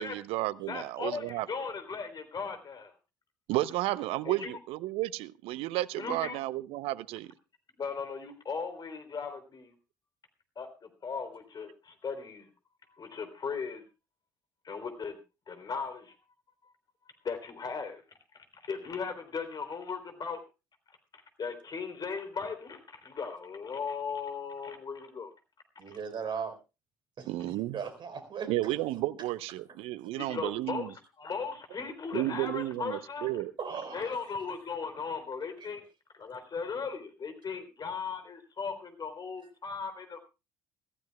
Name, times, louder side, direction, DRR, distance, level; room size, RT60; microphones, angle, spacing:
voice 1, 0.0-1.5 3.5-7.3 27.2-27.8 28.5-30.9 32.1-33.5, right 16 dB, 65° right, 0.7 m, -32 dB
voice 2, 0.7-2.9 4.2-4.5 6.0-6.4 7.8-9.7 10.5-12.5 13.0-13.8 14.6-15.2 15.5-16.1 16.6-16.7 17.2-18.0 18.3-20.4 21.1-25.3 30.2-30.9 31.2-33.3 33.9-35.8 36.2-40.2, left 5 dB, 40° left, 3.5 m, -37 dB
voice 3, 25.8-26.5 27.2-28.5 33.6-34.2, right 6 dB, 45° right, 4.1 m, -38 dB
24.5 x 15.0 x 2.3 m
hypercardioid pair, 55°, 11 cm